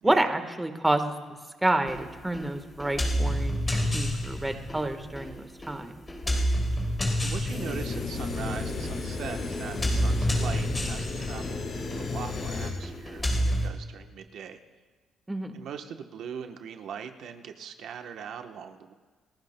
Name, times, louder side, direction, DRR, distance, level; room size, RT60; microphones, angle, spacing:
voice 1, 0.0-1.1 1.6-5.9 15.3-15.6, right 1 dB, 15° right, 7 dB, 1.3 m, -28 dB
sound 1, 1.9-13.7, equal, 25° left, 3.6 m, -30 dB
voice 2, 7.2-14.6 15.5-18.9, right 7 dB, 75° right, 6 dB, 1.0 m, -41 dB
sound 2, 7.5-12.7, left 3 dB, 55° left, 5.7 m, -34 dB
29.5 x 16.0 x 2.2 m, 1.5 s
cardioid pair, 90°, 0 cm